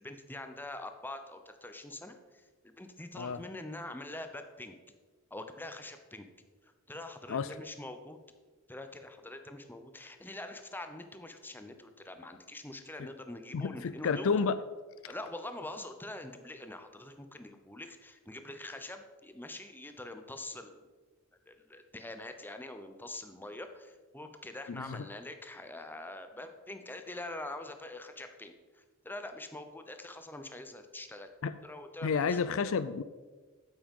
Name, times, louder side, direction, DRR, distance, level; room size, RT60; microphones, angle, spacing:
voice 1, 0.0-4.8 5.3-6.3 6.6-8.2 8.7-14.5 15.1-20.9 21.5-31.3 31.6-32.4, left 2 dB, 10° left, 7 dB, 0.7 m, -44 dB
voice 2, 13.5-14.6 24.7-25.0 31.4-31.5 32.0-33.0, left 5 dB, 65° left, 14 dB, 0.4 m, -30 dB
8.9 x 7.7 x 5.4 m, 1.3 s
head